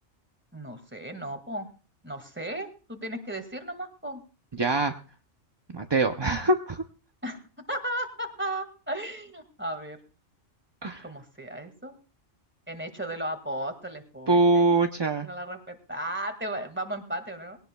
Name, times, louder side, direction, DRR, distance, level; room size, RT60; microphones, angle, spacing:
voice 1, 0.5-1.7 2.0-4.2 7.2-7.4 7.7-10.0 11.0-11.9 12.7-14.7 15.2-17.6, right 1 dB, 10° right, 7 dB, 1.8 m, -35 dB
voice 2, 4.5-4.9 5.7-6.8 10.8-11.0 14.3-15.3, right 2 dB, 30° right, 5 dB, 0.5 m, -23 dB
21.0 x 17.0 x 2.3 m, 0.35 s
omnidirectional pair, 1.3 m